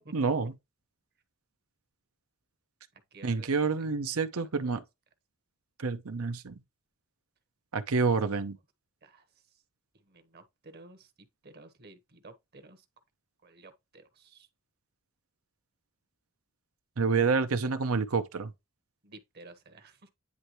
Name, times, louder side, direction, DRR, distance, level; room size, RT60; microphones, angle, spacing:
voice 1, 0.1-0.5 3.2-4.8 5.8-6.6 7.7-8.6 17.0-18.5, right 4 dB, 80° right, 0.8 m, -28 dB
voice 2, 3.1-3.9 4.7-4.8 7.9-8.1 9.0-9.2 10.1-11.1 11.4-12.8 13.4-14.5 19.0-20.1, right 2 dB, 45° right, 1.1 m, -53 dB
9.7 x 3.3 x 3.0 m
head